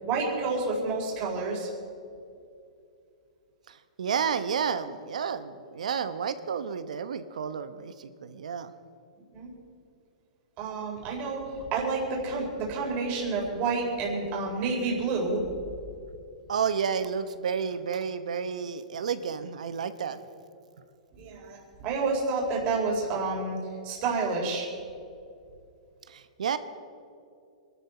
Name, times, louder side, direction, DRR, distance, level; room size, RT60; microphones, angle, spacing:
voice 1, 0.0-1.7 9.3-9.5 10.6-15.4 21.2-23.6 23.8-24.7, right 3 dB, 40° right, -1 dB, 4.2 m, -29 dB
voice 2, 3.7-8.7 16.5-20.2 26.1-26.6, right 6 dB, 80° right, 12 dB, 0.9 m, -31 dB
23.0 x 13.0 x 4.3 m, 2.5 s
hypercardioid pair, 130°, 4 cm